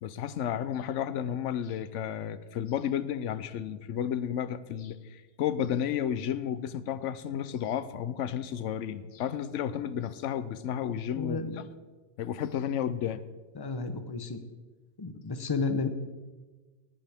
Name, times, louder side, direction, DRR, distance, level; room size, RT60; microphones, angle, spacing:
voice 1, 0.0-11.4 12.2-13.2, left 9 dB, 90° left, 15 dB, 1.0 m, -32 dB
voice 2, 11.2-11.6 13.5-14.4 15.0-15.9, left 4 dB, 25° left, 9 dB, 0.7 m, -32 dB
18.0 x 10.5 x 3.5 m, 1.3 s
omnidirectional pair, 1.2 m